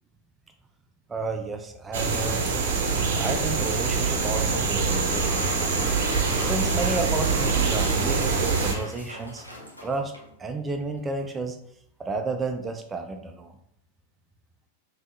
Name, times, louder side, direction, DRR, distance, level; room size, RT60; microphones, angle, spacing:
voice 1, 1.1-2.4 3.1-5.5 6.4-9.4 9.8-10.1 10.4-11.6 12.0-13.5, right 3 dB, 15° right, 4 dB, 0.4 m, -31 dB
sound 1, 1.9-8.7, right 4 dB, 60° right, 0.6 m, -24 dB
sound 2, 4.7-10.3, left 1 dB, 85° left, 0.7 m, -38 dB
3.6 x 2.8 x 3.4 m, 0.74 s
figure-of-eight pair, 90°, 0 cm